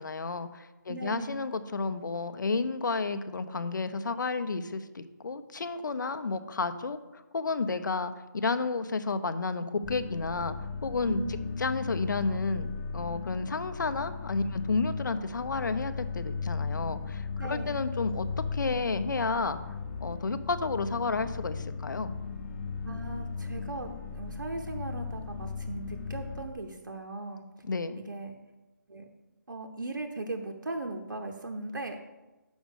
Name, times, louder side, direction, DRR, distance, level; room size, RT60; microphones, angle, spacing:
voice 1, 0.0-8.1 8.4-10.5 10.8-11.2 11.6-18.3 18.5-19.6 20.0-22.1 27.6-28.0, left 4 dB, 70° left, 10 dB, 0.7 m, -31 dB
voice 2, 0.9-1.4 11.1-11.6 17.4-17.8 22.8-27.4 28.0-28.4 28.9-29.1 29.5-32.0, right 2 dB, 85° right, 3 dB, 0.9 m, -38 dB
sound 1, 9.8-26.4, left 5 dB, 35° left, 0.8 m, -37 dB
6.2 x 5.1 x 6.4 m, 1.1 s
figure-of-eight pair, 155°, 11 cm